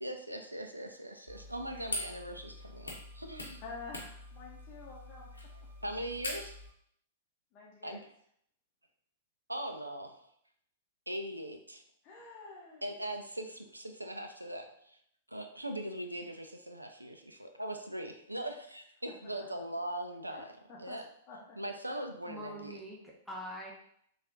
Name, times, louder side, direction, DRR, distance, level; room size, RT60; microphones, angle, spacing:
voice 1, 0.0-3.6 5.3-5.4 5.8-6.6 7.8-8.0 9.5-10.3 11.1-11.8 12.8-15.0 15.3-20.5 20.8-21.0 21.6-22.8, right 1 dB, 90° right, 5 dB, 0.4 m, -40 dB
sound 1, 1.3-6.7, left 1 dB, 80° left, 0.7 m, -43 dB
voice 2, 3.6-5.3 7.5-8.0 12.0-12.8 20.3-20.4 20.7-21.0 21.3-21.6, left 4 dB, 35° left, -4 dB, 0.7 m, -48 dB
voice 3, 22.2-23.7, equal, ahead, -4 dB, 0.8 m, -44 dB
3.4 x 2.3 x 2.7 m, 0.68 s
figure-of-eight pair, 105°, 0 cm